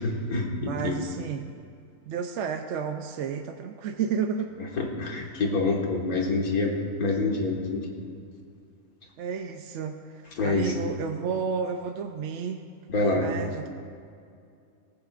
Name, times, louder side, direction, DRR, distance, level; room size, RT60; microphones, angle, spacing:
voice 1, 0.0-1.0 4.8-7.9 10.4-10.7 12.9-13.3, left 3 dB, 90° left, 0 dB, 2.0 m, -26 dB
voice 2, 0.6-1.4 2.1-4.5 9.2-12.6 13.0-13.7, right 6 dB, 65° right, 5 dB, 0.8 m, -31 dB
17.5 x 15.0 x 2.5 m, 2.3 s
omnidirectional pair, 1.5 m